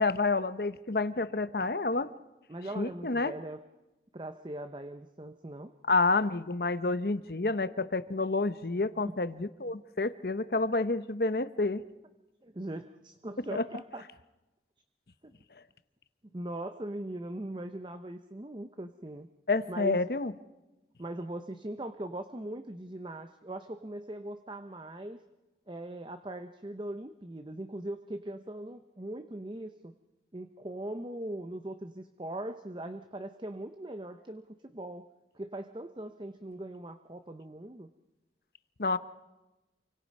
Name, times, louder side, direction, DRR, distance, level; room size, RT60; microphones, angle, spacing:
voice 1, 0.0-2.1 2.8-3.3 5.9-11.8 13.5-13.6 19.5-20.3 38.8-39.0, left 3 dB, 55° left, 13 dB, 0.8 m, -29 dB
voice 2, 2.5-3.6 4.1-5.7 9.0-9.2 12.4-14.0 15.2-15.3 16.3-19.3 19.7-20.0 21.0-25.2 25.7-29.9 30.3-35.1 35.3-37.9, right 1 dB, 25° right, 9 dB, 0.7 m, -40 dB
28.5 x 24.5 x 5.4 m, 1.0 s
head